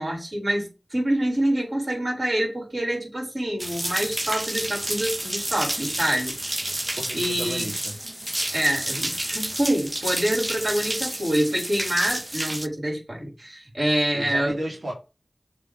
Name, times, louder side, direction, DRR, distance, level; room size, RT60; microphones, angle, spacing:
voice 1, 0.0-6.4 7.1-7.7 8.5-14.6, right 1 dB, 55° right, 4.0 m, -26 dB
sound 1, 3.6-12.7, right 1 dB, 20° right, 0.5 m, -30 dB
voice 2, 7.0-7.9 14.1-14.9, right 1 dB, 85° right, 1.9 m, -33 dB
6.8 x 3.3 x 5.0 m
wide cardioid pair, 50°, 0 cm